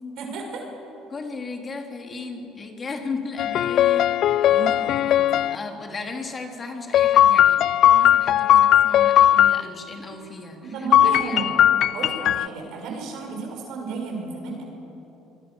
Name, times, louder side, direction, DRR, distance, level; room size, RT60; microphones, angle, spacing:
voice 1, 0.1-0.6 4.4-5.5 10.1-10.2 10.6-11.6 11.9-14.6, right 4 dB, 70° right, 1 dB, 6.9 m, -33 dB
voice 2, 1.1-4.1 5.5-10.6 11.0-11.5, left 4 dB, 35° left, 3 dB, 3.6 m, -35 dB
sound 1, 3.4-5.6 6.9-9.6 10.9-12.5, left 11 dB, 60° left, 0.4 m, -18 dB
27.0 x 21.5 x 7.3 m, 3.0 s
supercardioid pair, 80°, 0 cm